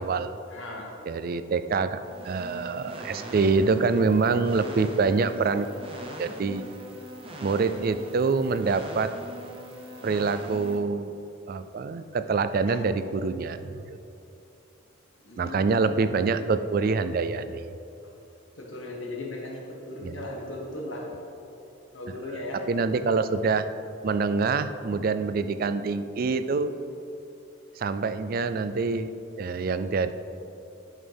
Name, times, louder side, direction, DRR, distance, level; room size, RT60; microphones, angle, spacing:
voice 1, 0.0-0.4 1.0-5.7 6.2-6.6 7.4-9.1 10.0-11.2 11.5-14.0 15.4-17.6 20.0-20.2 22.3-23.7 24.0-26.7 27.8-29.1 29.4-30.1, right 4 dB, 45° right, 11 dB, 0.3 m, -26 dB
voice 2, 0.5-0.9 12.7-12.8 15.2-15.9 18.6-21.1 21.9-22.6, left 2 dB, 70° left, -1 dB, 1.6 m, -37 dB
sound 1, 1.9-10.8, right 1 dB, 25° right, 0.8 m, -41 dB
11.0 x 6.4 x 3.5 m, 2.8 s
head